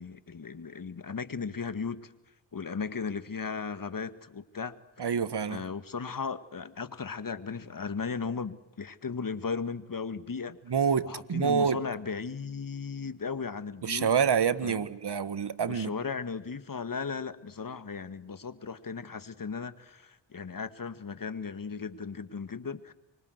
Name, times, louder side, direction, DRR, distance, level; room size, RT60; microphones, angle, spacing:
voice 1, 0.0-2.1 2.5-4.8 5.5-10.6 11.0-14.1 14.6-14.9 15.7-22.9, left 5 dB, 45° left, 12 dB, 1.9 m, -36 dB
voice 2, 5.0-5.6 10.7-11.8 13.8-15.9, right 7 dB, 60° right, 15 dB, 1.6 m, -27 dB
25.0 x 24.5 x 8.1 m, 0.97 s
cardioid pair, 60°, 45 cm